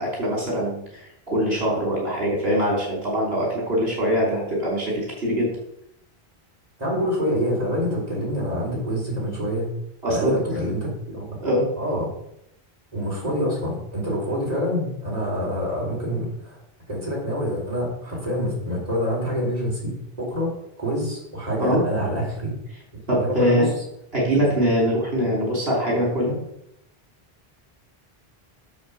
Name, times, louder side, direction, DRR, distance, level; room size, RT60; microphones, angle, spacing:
voice 1, 0.0-5.5 10.0-10.6 11.4-11.6 21.6-21.8 23.1-23.7 24.1-26.4, equal, 75° right, -3 dB, 3.7 m, -23 dB
voice 2, 6.8-9.7 10.1-11.4 11.8-12.1 12.9-16.6 16.9-20.5 20.8-22.5 23.1-23.7 24.3-24.5, equal, 40° right, -5 dB, 4.3 m, -26 dB
8.5 x 7.1 x 6.9 m, 0.78 s
omnidirectional pair, 1.0 m